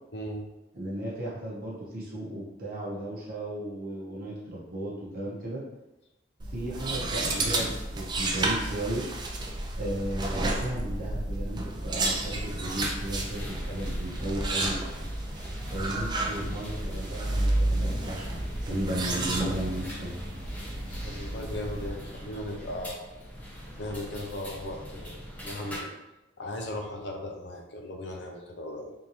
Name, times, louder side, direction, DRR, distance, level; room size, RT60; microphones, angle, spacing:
voice 1, 0.1-0.5 21.0-23.1 23.8-25.9 26.4-28.9, left 1 dB, 65° left, 1 dB, 0.6 m, -37 dB
voice 2, 0.7-5.6 6.5-9.0 9.8-14.8 15.7-20.3, right 1 dB, 55° right, -6 dB, 0.8 m, -35 dB
sound 1, 6.4-21.9, right 2 dB, 25° right, 0.4 m, -31 dB
sound 2, 12.7-25.8, equal, 10° left, 0.8 m, -42 dB
3.6 x 2.7 x 2.9 m, 0.98 s
head